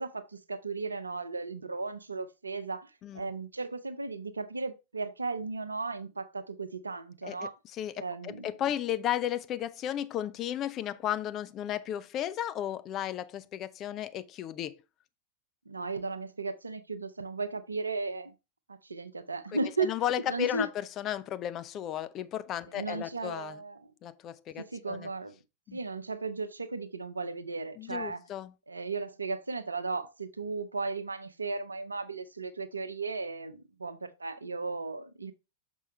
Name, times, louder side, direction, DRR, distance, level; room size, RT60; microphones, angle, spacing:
voice 1, 0.0-7.5 8.0-8.5 15.7-18.3 18.7-19.9 20.3-20.7 22.7-23.9 24.6-25.3 25.7-28.2 28.7-35.3, right 3 dB, 80° right, 0.6 m, -35 dB
voice 2, 7.2-14.8 19.8-23.6 24.0-25.1 25.7-25.8 27.8-28.5, left 11 dB, 35° left, 0.5 m, -34 dB
6.2 x 5.5 x 3.3 m
figure-of-eight pair, 90°, 0 cm